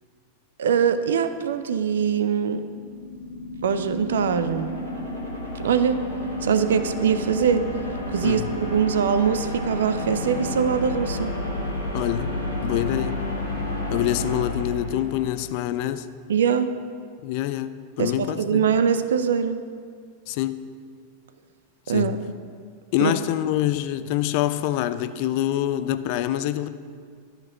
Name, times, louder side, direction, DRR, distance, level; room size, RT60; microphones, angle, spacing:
voice 1, 0.6-2.6 3.6-4.7 5.6-6.0 6.4-7.7 8.1-11.3 16.3-16.7 18.0-19.6 21.9-22.2 23.0-23.1, right 7 dB, 65° right, 11 dB, 0.4 m, -22 dB
sound 1, 2.6-15.6, left 2 dB, 80° right, 1.8 m, -31 dB
voice 2, 11.9-12.3 12.6-13.2 13.9-16.1 17.2-18.7 20.3-20.6 21.9-22.1 22.9-26.7, left 13 dB, 45° left, 12 dB, 0.3 m, -25 dB
12.5 x 4.5 x 5.0 m, 2.1 s
figure-of-eight pair, 90°, 0 cm